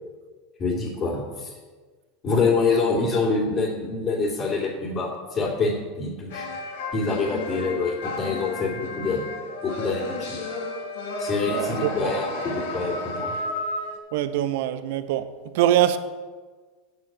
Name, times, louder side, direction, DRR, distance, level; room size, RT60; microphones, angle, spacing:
voice 1, 0.6-1.5 2.2-6.5 6.9-9.2 9.6-10.4 11.2-13.4, left 4 dB, 40° left, 2.4 m, -26 dB
sound 1, 6.3-14.0, left 2 dB, 75° left, 1.9 m, -32 dB
voice 2, 11.5-12.2 14.1-15.3 15.5-16.0, right 12 dB, 70° right, 0.7 m, -23 dB
8.2 x 7.5 x 7.3 m
hypercardioid pair, 95°, 0 cm